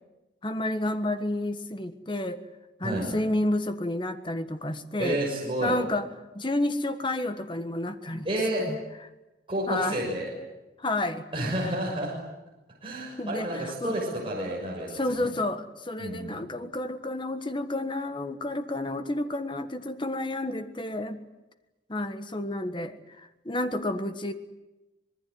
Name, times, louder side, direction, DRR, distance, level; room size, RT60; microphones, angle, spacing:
voice 1, 0.4-2.4 2.8-5.2 5.6-6.1 6.3-8.3 8.6-8.8 9.7-10.0 10.8-11.2 13.2-14.0 14.9-21.2 21.9-24.3, left 1 dB, 25° left, 9 dB, 1.5 m, -30 dB
voice 2, 5.0-5.8 8.2-8.6 9.5-10.3 11.3-12.1 12.8-15.3 16.0-16.4, right 1 dB, 30° right, -3 dB, 6.4 m, -30 dB
26.0 x 20.5 x 9.7 m, 1.0 s
head